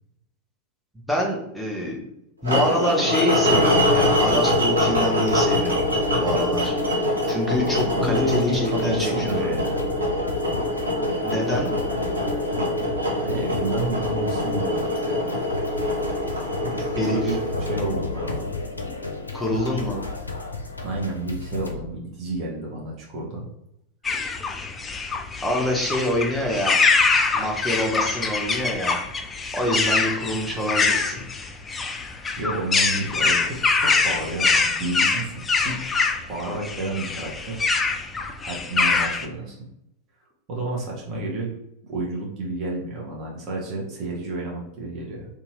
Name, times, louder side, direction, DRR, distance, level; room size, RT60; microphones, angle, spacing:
voice 1, 1.1-2.0 2.4-9.5 11.2-11.8 17.0-17.4 19.3-20.1 25.4-26.8 27.3-29.0 29.5-31.2, left 1 dB, ahead, -2 dB, 0.7 m, -26 dB
sound 1, 2.4-18.6, left 1 dB, 75° right, 0.7 m, -24 dB
sound 2, 3.4-21.7, left 3 dB, 80° left, 0.4 m, -33 dB
voice 2, 7.6-10.0 13.2-15.6 16.6-18.5 20.8-23.4 32.4-35.8 36.3-37.7 38.4-39.6 40.5-41.5 41.8-45.3, right 2 dB, 35° right, -3 dB, 0.8 m, -30 dB
sound 3, 24.0-39.3, left 4 dB, 15° left, 0.3 m, -24 dB
2.8 x 2.3 x 3.0 m, 0.80 s
figure-of-eight pair, 90°, 0 cm